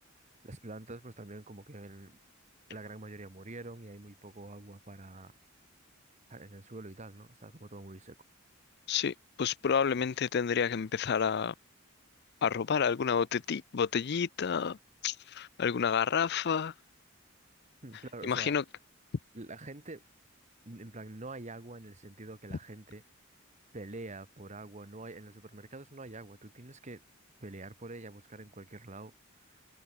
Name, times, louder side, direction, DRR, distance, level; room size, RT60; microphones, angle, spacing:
voice 1, 0.4-2.2 2.7-5.3 6.3-8.1 17.8-18.6 19.3-20.0 20.6-23.0 23.7-27.0 27.4-29.1 29.5-29.6, right 2 dB, 35° right, 1.5 m, -46 dB
voice 2, 8.9-11.5 12.4-14.8 15.0-16.7 18.2-18.6, left 7 dB, 55° left, 0.5 m, -29 dB
head